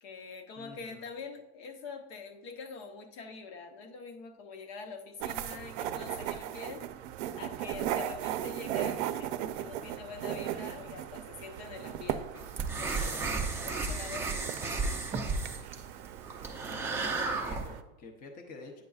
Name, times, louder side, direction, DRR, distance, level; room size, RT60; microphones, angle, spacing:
voice 1, 0.0-6.9 7.3-12.4 12.8-13.4 13.6-15.0, left 4 dB, 75° left, 4 dB, 1.0 m, -45 dB
voice 2, 0.6-1.1 14.0-14.2 16.6-18.8, left 3 dB, 25° left, 3 dB, 0.6 m, -49 dB
sound 1, 5.2-17.8, right 11 dB, 80° right, 0.5 m, -38 dB
sound 2, 12.4-17.7, right 3 dB, 10° right, 0.3 m, -33 dB
9.0 x 6.5 x 2.4 m, 1.0 s
cardioid pair, 165°, 34 cm